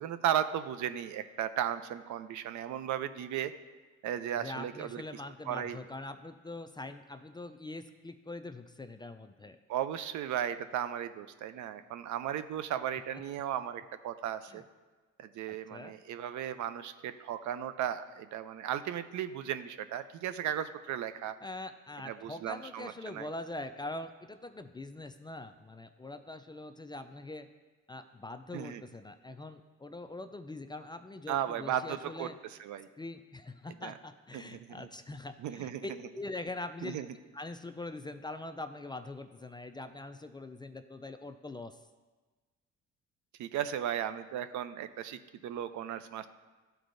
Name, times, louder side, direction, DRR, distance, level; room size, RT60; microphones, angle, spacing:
voice 1, 0.0-3.5 4.0-5.2 5.5-5.8 9.7-14.6 15.2-21.4 22.0-23.3 28.5-28.8 31.3-32.3 32.6-32.9 33.8-33.9 34.3-34.9 35.4-35.9 36.8-37.1 43.4-46.3, right 10 dB, 75° right, 11 dB, 0.5 m, -35 dB
voice 2, 4.4-9.6 14.5-14.6 15.5-15.9 21.4-27.5 27.9-32.4 33.0-37.0 37.3-41.8, left 2 dB, 15° left, 9 dB, 0.3 m, -43 dB
13.0 x 4.5 x 2.6 m, 1.3 s
cardioid pair, 90°, 30 cm